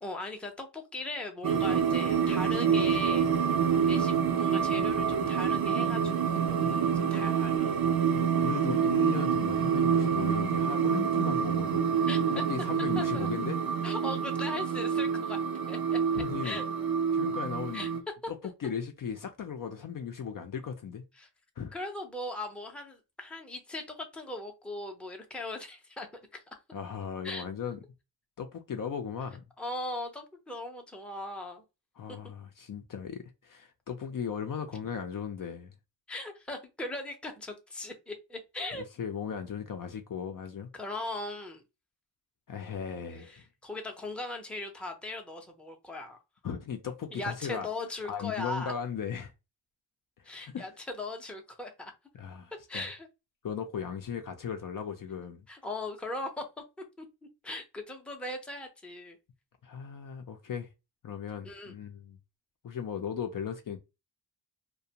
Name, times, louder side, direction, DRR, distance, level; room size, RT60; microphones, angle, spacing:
voice 1, 0.0-3.3 3.9-7.8 12.1-12.2 13.0-13.3 13.8-15.4 15.7-16.6 17.7-17.9 21.2-21.3 21.7-26.1 26.3-26.4 27.2-27.4 29.6-31.6 36.1-38.8 40.7-41.6 43.2-46.2 47.1-48.7 50.2-50.7 51.0-51.9 52.7-53.1 55.5-56.4 57.0-57.1 57.4-59.2 61.4-61.7, left 2 dB, ahead, 0.6 m, -39 dB
sound 1, 1.4-18.0, right 7 dB, 55° right, 0.6 m, -27 dB
voice 2, 8.1-11.9 12.3-13.6 16.2-16.6 17.1-17.9 18.3-21.0 21.6-21.7 26.7-27.8 28.4-29.4 32.0-35.7 38.7-40.7 42.5-43.4 46.4-47.7 48.0-49.3 50.2-50.7 52.1-52.8 53.4-55.5 59.6-60.7 61.0-62.2 62.6-63.8, left 7 dB, 45° left, 0.5 m, -37 dB
2.4 x 2.2 x 2.8 m
cardioid pair, 85°, 45 cm